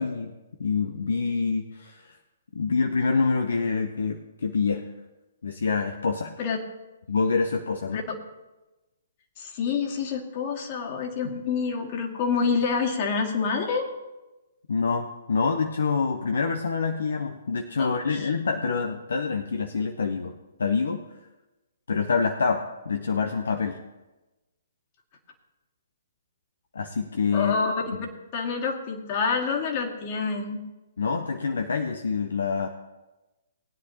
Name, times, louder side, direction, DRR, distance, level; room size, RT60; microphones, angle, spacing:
voice 1, 0.0-2.2 2.5-4.9 5.4-6.3 7.1-8.0 14.7-20.3 20.6-21.0 21.9-23.8 26.7-27.5 28.0-28.1 31.0-32.7, left 5 dB, 65° left, 6 dB, 0.8 m, -26 dB
voice 2, 9.4-13.9 17.8-18.3 27.3-27.9 28.3-30.6, left 5 dB, 35° left, 1 dB, 2.2 m, -27 dB
20.0 x 9.7 x 2.9 m, 1.1 s
figure-of-eight pair, 125°, 0 cm